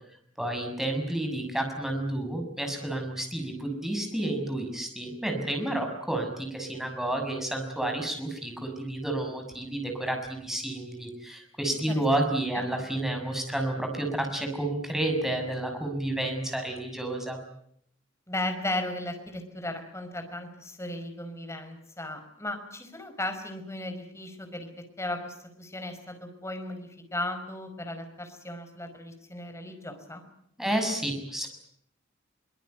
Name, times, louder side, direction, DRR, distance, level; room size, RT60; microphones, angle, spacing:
voice 1, 0.4-17.4 30.6-31.5, right 1 dB, ahead, 3 dB, 6.5 m, -30 dB
voice 2, 18.3-30.2, left 1 dB, 15° left, 7 dB, 5.1 m, -36 dB
24.0 x 24.0 x 9.4 m, 0.71 s
head